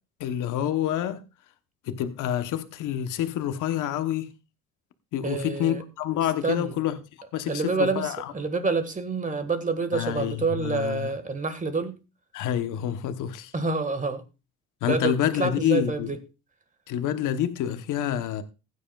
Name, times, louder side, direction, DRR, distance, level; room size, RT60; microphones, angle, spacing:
voice 1, 0.2-1.2 1.9-4.3 5.1-7.0 7.3-8.3 9.9-11.1 12.3-13.5 14.8-16.1 16.9-18.4, left 10 dB, 90° left, 1.1 m, -27 dB
voice 2, 5.2-5.8 6.4-6.8 7.5-12.0 13.5-14.2 14.8-16.2, right 3 dB, 25° right, 1.7 m, -27 dB
15.5 x 9.7 x 2.4 m
cardioid pair, 90°, 30 cm